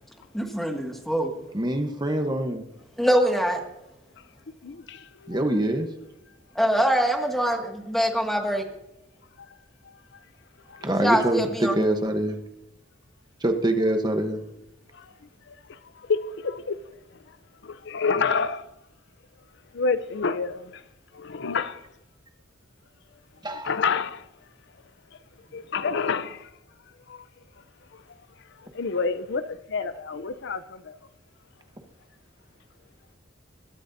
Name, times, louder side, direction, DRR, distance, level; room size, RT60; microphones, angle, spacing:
voice 1, 0.3-1.3 3.0-3.6 6.6-8.6 11.0-11.8, equal, ahead, 2.0 m, -23 dB
voice 2, 1.5-2.6 5.3-5.9 10.8-12.4 13.4-14.4 23.4-23.7, right 1 dB, 20° right, 1.1 m, -25 dB
voice 3, 4.6-5.4 9.4-9.5 10.7-10.9 14.9-15.1 15.5-16.8 17.6-18.6 19.7-20.8 21.2-21.8 23.6-24.3 25.1-25.2 25.5-26.5 27.1-27.3 27.9-28.0 28.6-31.0, left 5 dB, 65° left, 0.6 m, -29 dB
21.5 x 12.5 x 2.7 m
head